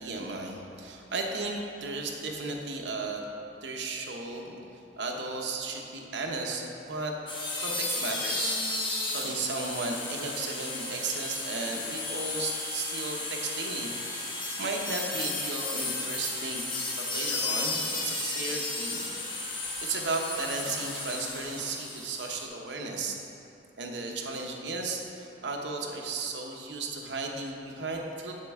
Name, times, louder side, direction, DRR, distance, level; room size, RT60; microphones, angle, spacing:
voice 1, 0.0-3.2 3.6-4.5 5.0-7.2 7.5-16.7 17.0-19.1 19.8-23.2 23.8-28.3, right 3 dB, 85° right, 1 dB, 0.9 m, -35 dB
sound 1, 7.3-22.5, left 3 dB, 30° left, 1.0 m, -34 dB
8.0 x 7.4 x 3.6 m, 2.7 s
head